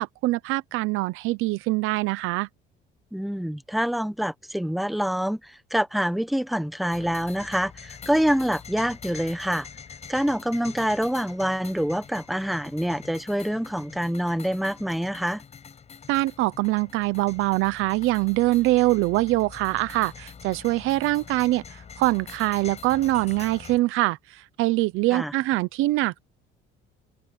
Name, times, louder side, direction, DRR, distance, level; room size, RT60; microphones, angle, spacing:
voice 1, 0.0-2.5 16.1-21.6 22.0-24.2 24.6-26.2, right 18 dB, 80° right, 0.9 m, -23 dB
voice 2, 3.1-9.7 10.1-15.4 25.1-25.3, equal, ahead, 1.0 m, -26 dB
sound 1, 6.9-23.8, left 6 dB, 30° left, 6.9 m, -44 dB
cardioid pair, 145°, 21 cm